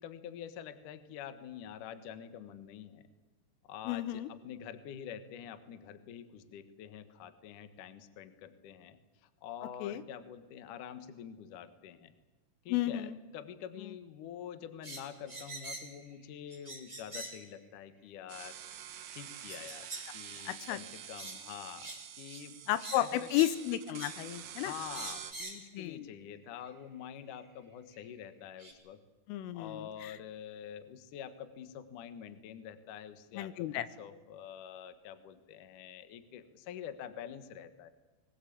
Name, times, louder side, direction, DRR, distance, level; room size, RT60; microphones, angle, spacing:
voice 1, 0.0-3.1 3.7-12.1 12.7-18.6 19.1-19.9 20.1-21.9 22.2-22.5 22.9-23.3 24.6-29.0 29.5-33.5 33.8-37.9, left 9 dB, 70° left, 11 dB, 2.0 m, -46 dB
voice 2, 3.9-4.3 9.8-10.0 12.7-13.2 13.8-14.0 20.5-20.8 22.7-24.7 25.7-26.1 29.3-30.2 33.3-33.9, left 13 dB, 85° left, 14 dB, 3.5 m, -33 dB
sound 1, 14.8-16.0 16.5-17.4 18.4-18.5 19.5-20.1 20.4-20.6 21.1-21.4 21.8-22.0 22.3-22.4 22.8-23.6 23.9-24.2 24.9-25.7 26.7-26.8 27.9-28.0 28.6-28.7, right 2 dB, 10° right, 3.3 m, -44 dB
sound 2, 18.3-25.3, right 10 dB, 75° right, 1.9 m, -47 dB
22.0 x 19.5 x 8.6 m, 1.2 s
omnidirectional pair, 5.7 m